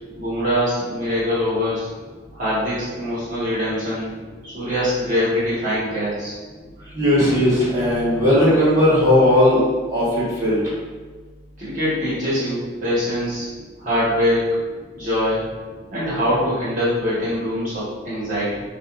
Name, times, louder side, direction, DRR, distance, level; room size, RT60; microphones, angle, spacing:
voice 1, 0.1-1.9 2.3-4.1 4.4-6.3 11.6-13.5 13.8-14.4 14.9-15.5 15.9-18.6, equal, 45° right, -9 dB, 1.3 m, -23 dB
voice 2, 6.9-10.7, left 1 dB, 20° right, -11 dB, 1.5 m, -17 dB
6.5 x 2.4 x 2.5 m, 1.4 s
head